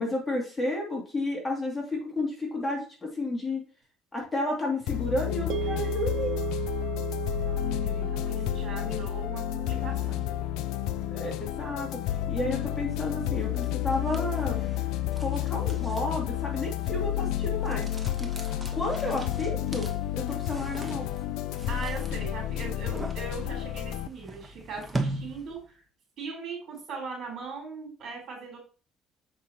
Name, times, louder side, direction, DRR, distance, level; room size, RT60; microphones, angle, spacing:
voice 1, 0.0-3.6 4.1-6.4 11.1-12.0 12.3-14.6 15.2-17.9 18.2-18.3 18.7-21.1, left 2 dB, 15° left, -1 dB, 2.5 m, -31 dB
sound 1, 4.9-24.1, left 13 dB, 85° left, 0.3 m, -31 dB
sound 2, 5.5-13.8, right 15 dB, 70° right, 0.6 m, -39 dB
voice 2, 7.3-10.3 21.7-25.8 26.2-28.6, right 4 dB, 55° right, 0 dB, 4.0 m, -40 dB
sound 3, 13.3-25.7, right 2 dB, 15° right, 1.1 m, -41 dB
7.3 x 5.4 x 2.9 m, 0.36 s
cardioid pair, 115°, 0 cm